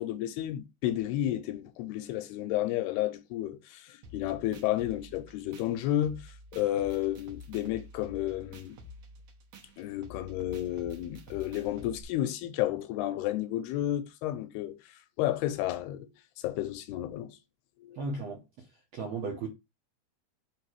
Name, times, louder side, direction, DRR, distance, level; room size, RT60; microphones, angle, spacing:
voice 1, 0.0-6.2 6.5-8.8 9.8-14.8 15.2-16.1 16.4-17.4 17.8-18.0, left 13 dB, 85° left, 2.6 m, -31 dB
sound 1, 4.0-12.0, left 2 dB, 70° right, 1.6 m, -49 dB
voice 2, 17.9-18.6 18.9-19.5, right 3 dB, 85° right, 1.4 m, -35 dB
6.5 x 3.3 x 4.6 m
omnidirectional pair, 4.7 m